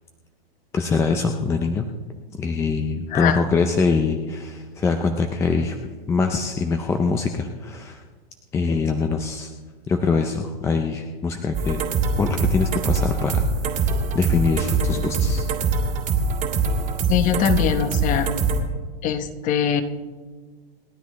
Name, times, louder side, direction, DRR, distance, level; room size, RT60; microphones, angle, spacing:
voice 1, 0.7-1.9 2.3-5.8 6.1-8.0 8.5-9.5 9.9-11.9 12.2-15.5, left 4 dB, 10° left, 5 dB, 0.5 m, -23 dB
voice 2, 3.1-3.4 17.1-18.3 19.0-19.8, left 8 dB, 25° left, 10 dB, 1.0 m, -22 dB
sound 1, 11.5-18.6, right 4 dB, 25° right, 2.0 m, -23 dB
28.0 x 10.0 x 3.1 m, 1.4 s
hypercardioid pair, 140°, 30 cm